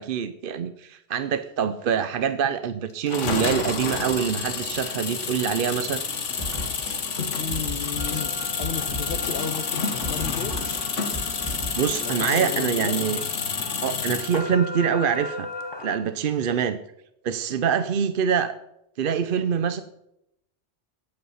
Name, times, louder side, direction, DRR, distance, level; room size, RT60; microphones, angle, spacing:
voice 1, 0.0-6.0 11.7-13.2 13.8-15.5 15.8-16.8 17.2-18.5 19.0-19.8, right 7 dB, 55° right, 11 dB, 0.7 m, -25 dB
sound 1, 3.1-14.5, left 5 dB, 90° left, 1.6 m, -29 dB
sound 2, 6.4-12.7, equal, 20° right, 3.1 m, -36 dB
voice 2, 7.4-10.6 12.0-13.0, left 6 dB, 55° left, 7 dB, 1.1 m, -33 dB
sound 3, 8.0-16.0, left 2 dB, 25° left, 0.8 m, -39 dB
15.0 x 8.3 x 5.6 m, 0.83 s
omnidirectional pair, 1.2 m